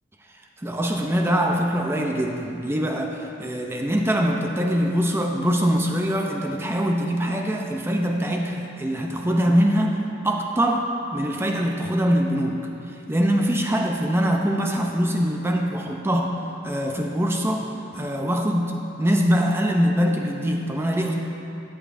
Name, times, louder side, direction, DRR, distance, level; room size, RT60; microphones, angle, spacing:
voice 1, 0.6-10.0 10.2-10.8 11.1-12.6 13.1-16.3 16.6-17.7 17.9-18.7 19.0-21.1, equal, 10° right, 1 dB, 0.5 m, -23 dB
13.0 x 9.0 x 2.6 m, 2.9 s
head